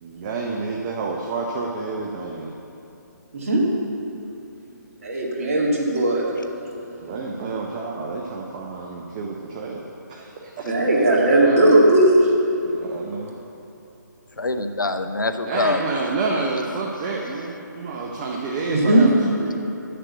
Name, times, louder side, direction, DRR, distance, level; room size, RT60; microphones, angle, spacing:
voice 1, 0.0-2.5 7.0-10.7 11.3-11.7 12.8-13.3 15.5-19.1 19.4-19.5, right 3 dB, 25° right, -1 dB, 0.7 m, -29 dB
voice 2, 3.3-3.7 5.0-6.2 10.6-12.3 18.7-19.1, right 1 dB, 45° right, -2 dB, 2.0 m, -17 dB
voice 3, 14.4-16.0 16.3-16.6, left 3 dB, 80° left, 9 dB, 0.6 m, -25 dB
7.4 x 6.8 x 7.7 m, 2.8 s
figure-of-eight pair, 140°, 10 cm